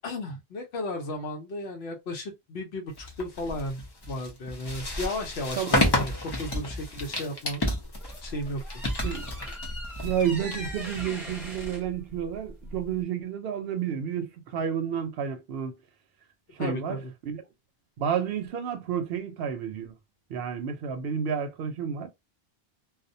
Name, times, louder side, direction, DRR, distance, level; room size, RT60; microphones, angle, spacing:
voice 1, 0.0-6.1 6.4-7.6 8.2-8.6 16.6-17.1, left 1 dB, 90° left, 0.9 m, -34 dB
sound 1, 3.0-11.6, left 1 dB, 30° left, 0.5 m, -31 dB
voice 2, 5.6-5.9 9.0-9.2 10.0-15.7 16.6-17.0 17.2-17.4 18.0-19.9 20.3-22.1, right 8 dB, 75° right, 0.8 m, -30 dB
sound 2, 7.8-13.0, equal, ahead, 1.0 m, -39 dB
2.3 x 2.1 x 2.6 m
omnidirectional pair, 1.0 m